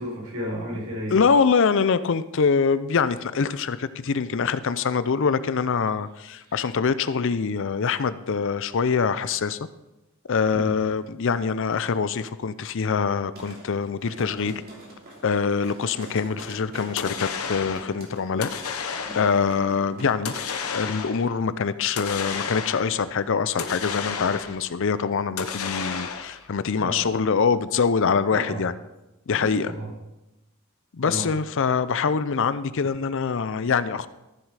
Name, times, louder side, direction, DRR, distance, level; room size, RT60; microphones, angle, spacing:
voice 1, 0.0-1.2 10.5-10.8 26.8-27.1 28.3-28.6 29.3-29.9 31.0-31.3, equal, 85° right, 4.6 m, -32 dB
voice 2, 1.1-9.6 10.3-14.6 15.2-18.5 19.1-20.3 20.7-28.7 29.3-29.7 30.9-34.1, left 5 dB, 60° left, 0.5 m, -24 dB
sound 1, 13.3-20.1 20.4-20.5, right 1 dB, 45° right, 3.1 m, -44 dB
sound 2, 17.0-17.9 18.4-19.5 20.2-21.3 22.0-23.0 23.6-24.7 25.4-26.5, left 6 dB, 75° left, 1.0 m, -32 dB
14.0 x 7.4 x 4.9 m
head